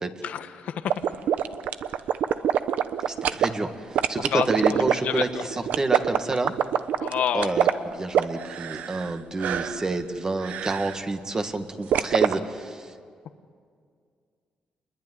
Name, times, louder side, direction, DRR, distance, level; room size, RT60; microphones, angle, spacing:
voice 1, 0.2-0.9 4.3-5.2 7.0-8.0, left 9 dB, 75° left, 9 dB, 1.2 m, -29 dB
sound 1, 0.9-3.5 4.0-9.1 9.4-9.8 10.4-11.0 11.9-12.3, right 9 dB, 80° right, 0.9 m, -24 dB
voice 2, 3.1-6.5 7.3-12.9, right 2 dB, 25° right, 6 dB, 1.9 m, -29 dB
28.5 x 21.5 x 9.7 m, 2.1 s
cardioid pair, 105°, 3 cm